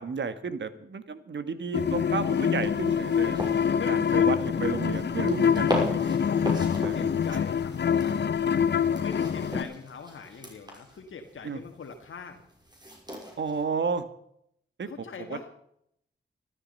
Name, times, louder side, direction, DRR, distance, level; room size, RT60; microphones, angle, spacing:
voice 1, 0.0-3.5 3.9-6.0 6.8-7.1 8.7-8.9 11.4-11.6 13.4-14.0 14.8-14.9 15.2-15.4, right 5 dB, 60° right, 12 dB, 1.6 m, -32 dB
sound 1, 1.7-9.6, left 7 dB, 55° left, 0.8 m, -25 dB
sound 2, 2.3-13.6, left 1 dB, 20° right, 5.9 m, -38 dB
voice 2, 3.7-4.5 6.2-8.2 9.0-12.4 14.9-15.5, left 5 dB, 70° left, 4 dB, 1.7 m, -42 dB
13.5 x 13.0 x 5.4 m, 0.72 s
cardioid pair, 60°, 21 cm